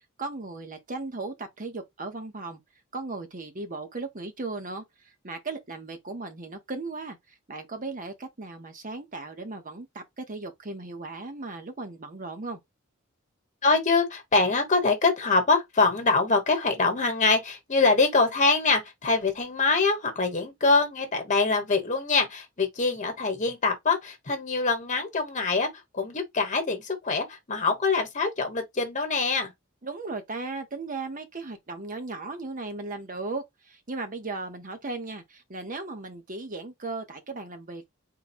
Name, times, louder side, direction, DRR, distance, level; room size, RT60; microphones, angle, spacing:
voice 1, 0.2-2.6 2.9-7.2 7.5-12.6 29.8-37.8, right 3 dB, 40° right, 1.0 m, -36 dB
voice 2, 13.6-25.7 25.9-29.5, left 3 dB, 35° left, 1.2 m, -24 dB
3.9 x 2.2 x 4.4 m
head